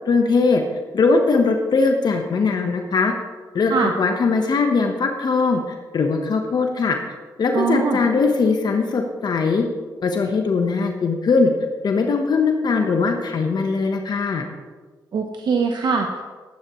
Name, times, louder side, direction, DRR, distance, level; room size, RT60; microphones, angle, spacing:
voice 1, 0.1-0.6 0.9-3.1 3.5-5.6 5.9-7.0 7.4-9.6 10.0-11.5 11.8-14.4, left 4 dB, 65° left, 3 dB, 1.2 m, -20 dB
voice 2, 7.5-8.0 15.1-16.2, right 5 dB, 70° right, 3 dB, 0.9 m, -22 dB
13.5 x 12.0 x 3.1 m, 1.4 s
cardioid pair, 65°, 8 cm